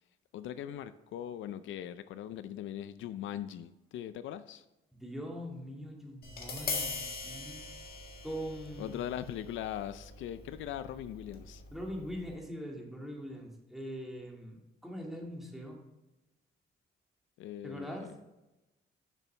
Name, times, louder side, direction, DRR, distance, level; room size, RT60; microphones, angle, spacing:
voice 1, 0.3-4.6 8.8-11.6 17.4-18.1, left 11 dB, 75° left, 13 dB, 0.5 m, -40 dB
voice 2, 4.9-7.6 8.2-9.1 11.7-15.8 17.6-18.2, equal, ahead, -1 dB, 2.2 m, -42 dB
Tap, 6.2-12.3, left 4 dB, 50° left, 1.8 m, -42 dB
6.9 x 6.2 x 5.6 m, 1.0 s
cardioid pair, 90°, 20 cm